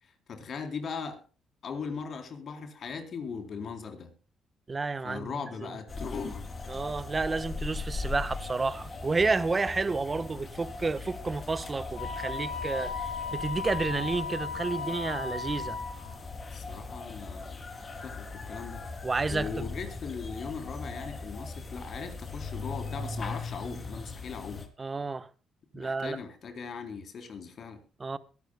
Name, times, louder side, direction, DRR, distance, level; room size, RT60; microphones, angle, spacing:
voice 1, 0.0-1.2 1.6-4.1 5.0-6.5 16.5-17.6 18.0-18.8 19.3-24.7 25.7-27.8, left 5 dB, 55° left, 3.7 m, -39 dB
voice 2, 4.7-5.7 6.7-15.8 19.0-19.7 24.8-25.3 25.7-26.2 28.0-28.2, right 3 dB, 30° right, 1.2 m, -31 dB
sound 1, 5.9-24.7, left 3 dB, 35° left, 3.2 m, -39 dB
Wind instrument woodwind instrument, 11.9-16.1, left 5 dB, 90° left, 4.2 m, -36 dB
22.5 x 12.5 x 2.3 m
cardioid pair, 90°, 0 cm